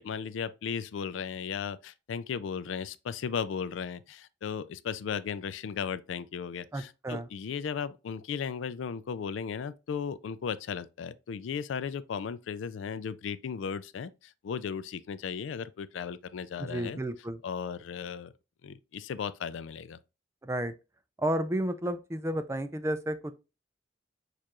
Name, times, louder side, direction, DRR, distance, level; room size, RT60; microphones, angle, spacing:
voice 1, 0.0-17.0 17.4-18.3 18.6-20.0, left 6 dB, 80° left, 0.4 m, -36 dB
voice 2, 6.7-7.3 16.6-17.4 20.4-20.7 21.2-23.3, right 1 dB, 15° right, 0.3 m, -32 dB
6.6 x 2.5 x 2.9 m
head